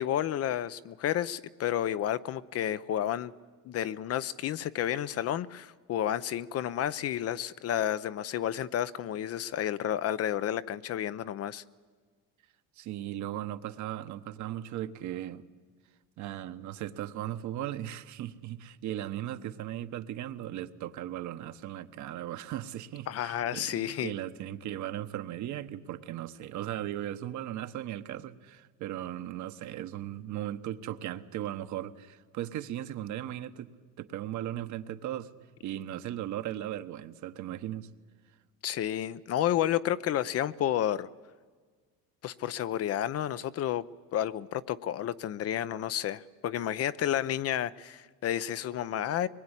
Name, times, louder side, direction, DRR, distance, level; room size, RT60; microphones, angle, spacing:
voice 1, 0.0-3.3 3.6-11.6 23.1-24.1 38.6-41.1 42.2-43.9 44.1-49.3, left 11 dB, 40° left, 15 dB, 0.7 m, -31 dB
voice 2, 12.8-15.5 16.2-33.7 34.0-35.3 35.6-37.9, right 12 dB, 55° right, 10 dB, 1.3 m, -37 dB
23.5 x 21.0 x 9.9 m, 1.5 s
cardioid pair, 145°, 36 cm